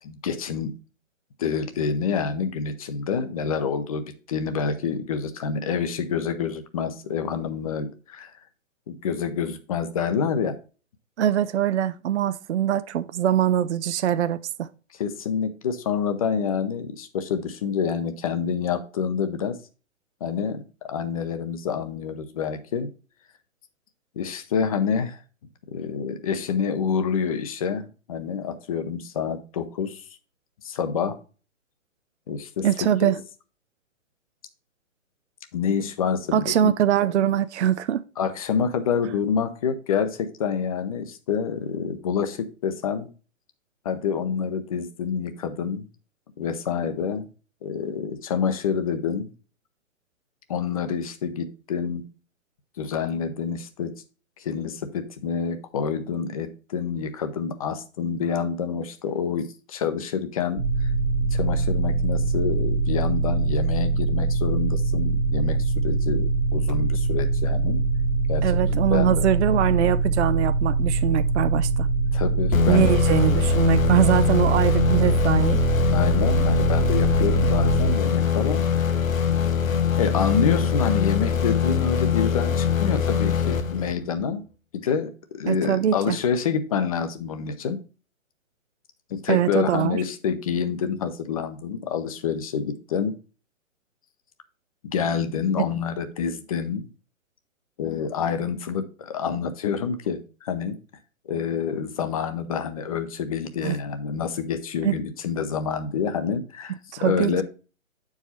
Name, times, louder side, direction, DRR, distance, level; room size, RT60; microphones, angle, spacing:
voice 1, 0.0-0.7 1.4-8.3 8.9-10.6 14.9-19.6 20.2-22.9 24.2-25.2 25.7-30.1 30.6-31.2 32.3-33.1 35.5-36.7 37.0-37.1 38.2-43.1 43.8-45.9 46.4-47.3 47.6-49.3 50.5-52.0 52.8-53.9 54.4-60.9 61.3-67.8 68.3-69.3 72.1-72.9 75.9-78.6 80.0-84.4 84.7-87.8 89.1-93.1 94.8-96.9 97.8-100.8 101.3-107.4, left 6 dB, 25° left, 0.7 m, -27 dB
voice 2, 11.2-14.7 32.6-33.2 36.3-38.0 68.4-71.9 72.7-75.6 85.4-86.2 89.3-90.0 103.6-103.8 104.8-104.9 106.9-107.4, right 10 dB, 60° right, 0.5 m, -22 dB
sound 1, 60.6-78.0, right 3 dB, 35° right, 1.1 m, -23 dB
sound 2, 72.5-84.2, left 7 dB, 80° left, 1.2 m, -23 dB
7.9 x 4.8 x 4.2 m
hypercardioid pair, 155°, 40 cm